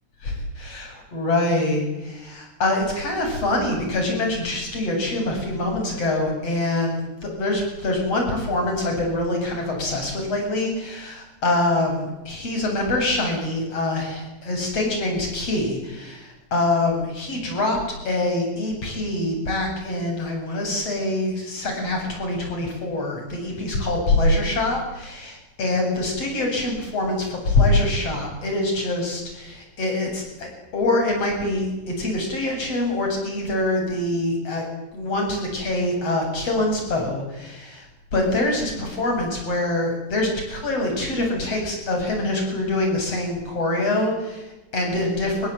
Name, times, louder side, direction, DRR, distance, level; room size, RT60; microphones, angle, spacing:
voice 1, 0.2-17.8 18.0-31.7 32.0-34.6 34.9-37.9 38.1-45.5, left 2 dB, 30° left, 2 dB, 9.0 m, -24 dB
28.5 x 22.5 x 9.3 m, 1.0 s
omnidirectional pair, 5.5 m